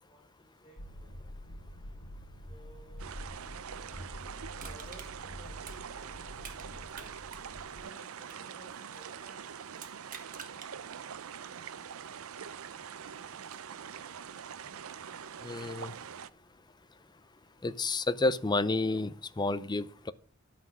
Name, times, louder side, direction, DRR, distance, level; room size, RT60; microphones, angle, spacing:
voice 1, 0.1-1.2 2.5-7.1 7.7-9.4, right 2 dB, ahead, 5.5 m, -57 dB
sound 1, 0.8-7.8, equal, 80° left, 3.0 m, -47 dB
sound 2, 3.0-16.3, right 8 dB, 80° right, 0.5 m, -44 dB
Crushing, 4.6-6.7 6.9-9.2 9.7-10.7 11.2-11.3, right 7 dB, 40° right, 1.4 m, -49 dB
voice 2, 15.4-15.9 17.6-20.1, left 3 dB, 20° left, 0.6 m, -30 dB
11.5 x 6.0 x 6.1 m
head